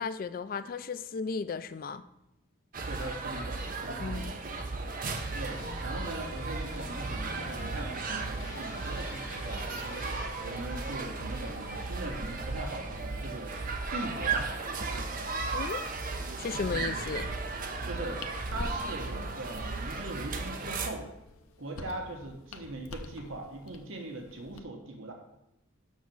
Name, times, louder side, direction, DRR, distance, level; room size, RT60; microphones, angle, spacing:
voice 1, 0.0-2.0 4.0-4.4 15.5-15.8 16.4-17.3, left 5 dB, 40° left, 13 dB, 0.3 m, -35 dB
sound 1, 2.7-20.9, right 3 dB, 40° right, 0.8 m, -35 dB
voice 2, 2.9-4.3 5.3-10.1 10.4-13.6 13.9-14.7 16.7-16.9 17.8-21.1 21.6-25.1, right 2 dB, 70° right, 2 dB, 1.3 m, -40 dB
sound 2, 5.1-17.3 17.6-18.2 18.5-19.1 19.4-19.6 19.9-20.0 20.3-20.4, left 2 dB, 60° left, 1.3 m, -48 dB
sound 3, 16.9-24.6, left 2 dB, 85° left, 0.7 m, -46 dB
6.2 x 6.1 x 7.0 m, 0.85 s
head